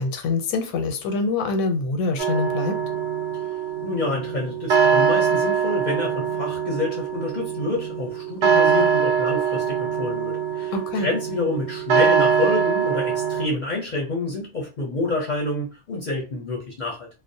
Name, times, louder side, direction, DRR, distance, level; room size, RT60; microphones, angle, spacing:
voice 1, 0.0-2.8 10.7-11.1, left 3 dB, 85° left, 1.0 m, -25 dB
sound 1, 2.2-13.5, right 7 dB, 65° right, 0.8 m, -23 dB
voice 2, 3.8-17.1, left 2 dB, 50° left, 0.5 m, -28 dB
2.4 x 2.0 x 2.6 m
omnidirectional pair, 1.4 m